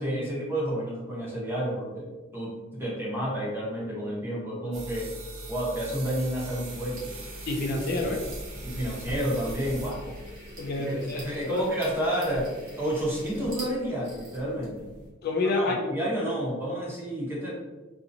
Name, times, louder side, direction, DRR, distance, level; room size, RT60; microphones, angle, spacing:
voice 1, 0.0-5.1 5.5-7.0 8.0-8.1 8.6-10.1 11.1-12.5 12.8-14.9 15.4-17.5, equal, 10° right, -6 dB, 0.8 m, -30 dB
sound 1, 4.7-10.4, right 2 dB, 70° right, 0.6 m, -41 dB
sound 2, 6.6-15.1, equal, 45° right, 1.0 m, -42 dB
voice 2, 7.5-8.2 10.6-11.6 15.2-15.9, left 2 dB, 50° left, 1 dB, 0.4 m, -28 dB
2.8 x 2.5 x 2.5 m, 1.2 s
head